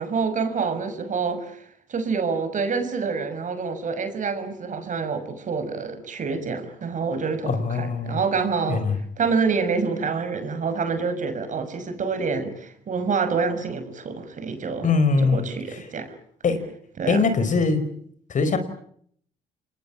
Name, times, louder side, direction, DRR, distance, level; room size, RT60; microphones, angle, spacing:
voice 1, 0.0-1.6 1.9-8.8 9.2-14.9 15.2-16.1 17.0-17.3, right 5 dB, 50° right, 9 dB, 6.1 m, -27 dB
voice 2, 7.5-8.2 8.7-9.0 14.8-15.5 16.4-16.6 17.1-17.8 18.3-18.6, left 4 dB, 50° left, 10 dB, 5.3 m, -21 dB
27.0 x 21.0 x 8.9 m, 0.65 s
supercardioid pair, 70°, 16 cm